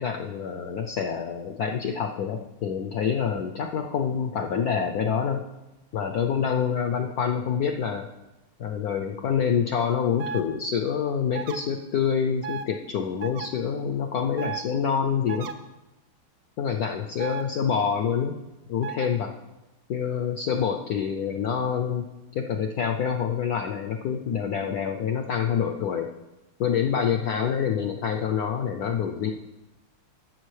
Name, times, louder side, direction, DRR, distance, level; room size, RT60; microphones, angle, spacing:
voice 1, 0.0-5.5 5.9-8.1 8.6-15.5 16.6-18.4 18.7-19.3 19.9-22.1 22.3-26.1 26.6-29.3, left 7 dB, 80° left, 4 dB, 0.8 m, -26 dB
sound 1, 10.2-10.4 11.3-11.6 12.4-12.7 13.2-13.5 14.4-14.6 15.3-15.5 17.2-17.4 18.8-19.1, right 7 dB, 80° right, 0.7 m, -34 dB
14.0 x 6.7 x 3.2 m, 1.0 s
omnidirectional pair, 2.2 m